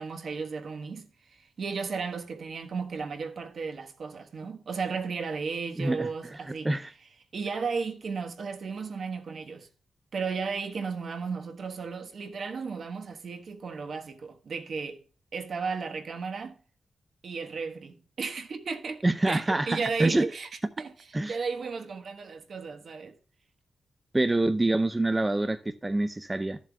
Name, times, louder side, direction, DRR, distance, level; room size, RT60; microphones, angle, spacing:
voice 1, 0.0-6.7 7.3-9.7 10.1-15.0 15.3-16.6 17.2-20.5 20.8-23.2, right 5 dB, 60° right, 1.2 m, -34 dB
voice 2, 5.8-6.1 6.6-6.9 19.0-20.3 21.1-21.4 24.1-26.6, right 2 dB, 15° right, 0.5 m, -26 dB
14.0 x 7.5 x 2.2 m
wide cardioid pair, 125°, 0 cm